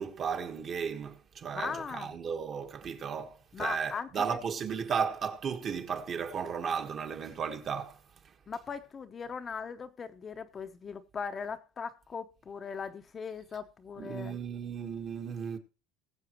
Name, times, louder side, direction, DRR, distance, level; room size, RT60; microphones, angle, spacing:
voice 1, 0.0-8.3 14.0-15.6, right 6 dB, 35° right, 1.5 m, -35 dB
voice 2, 1.5-2.1 3.5-4.4 8.5-14.4, left 6 dB, 30° left, 0.9 m, -39 dB
20.0 x 7.4 x 3.1 m
cardioid pair, 135°, 0 cm